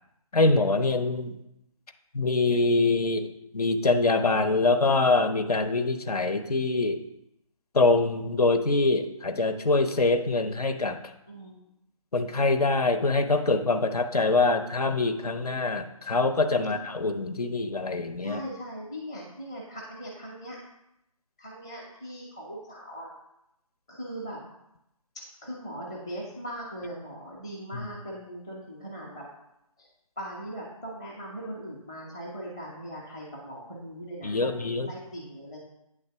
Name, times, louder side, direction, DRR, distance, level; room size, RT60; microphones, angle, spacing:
voice 1, 0.3-1.4 2.1-7.0 7.7-11.0 12.1-18.4 27.7-27.9 34.2-34.9, left 3 dB, 85° left, 8 dB, 1.0 m, -24 dB
voice 2, 18.2-20.6 21.4-23.1 23.9-24.4 25.4-29.2 30.2-35.6, right 1 dB, 10° left, -5 dB, 0.6 m, -39 dB
8.7 x 3.9 x 6.7 m, 0.85 s
hypercardioid pair, 175°, 19 cm